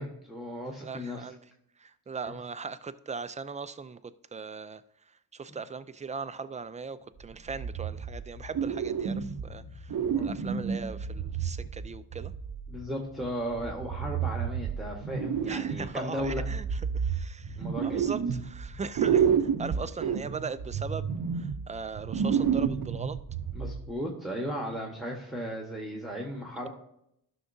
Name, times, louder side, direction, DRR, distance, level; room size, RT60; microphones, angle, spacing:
voice 1, 0.0-1.2 2.2-2.3 10.1-10.3 12.7-16.4 17.6-18.1 23.5-26.7, equal, ahead, -1 dB, 1.3 m, -36 dB
voice 2, 0.8-1.4 1.8-12.3 15.5-23.2, right 5 dB, 15° right, 13 dB, 0.4 m, -39 dB
sound 1, 7.0-19.6, left 2 dB, 45° left, 1.0 m, -50 dB
sound 2, 7.5-8.3 8.5-9.5 9.9-12.7 13.6-15.9 16.2-18.7 18.9-23.9, right 7 dB, 50° right, 0.7 m, -30 dB
12.0 x 5.8 x 2.7 m, 0.75 s
cardioid pair, 65°, 43 cm